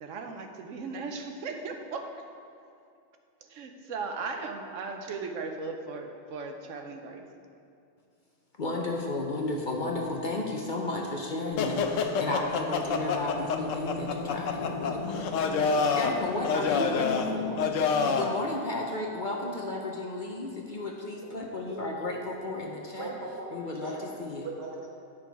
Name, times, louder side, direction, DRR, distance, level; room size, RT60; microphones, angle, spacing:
voice 1, 0.0-2.1 3.4-7.3, right 4 dB, 80° right, 4 dB, 1.1 m, -37 dB
voice 2, 8.6-17.7 18.0-23.1 23.5-24.5, left 2 dB, 45° left, 0 dB, 0.8 m, -34 dB
sound 1, 11.6-18.4, left 5 dB, 85° left, 1.0 m, -28 dB
voice 3, 21.7-22.2 22.5-22.6 23.0-24.0 24.3-24.9, right 3 dB, 55° right, -3 dB, 1.7 m, -40 dB
9.3 x 6.1 x 4.6 m, 2.5 s
omnidirectional pair, 1.3 m